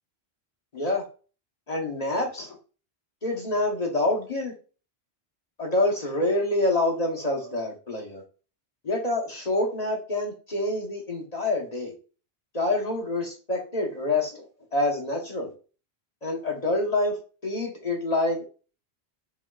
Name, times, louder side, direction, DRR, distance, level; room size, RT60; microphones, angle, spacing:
voice 1, 0.7-1.0 1.7-2.6 3.2-4.5 5.6-8.2 8.8-11.9 12.5-14.4 14.7-15.5 16.2-17.2 17.4-18.4, left 2 dB, 40° left, 0 dB, 1.0 m, -26 dB
6.2 x 3.1 x 2.3 m, 0.36 s
omnidirectional pair, 1.1 m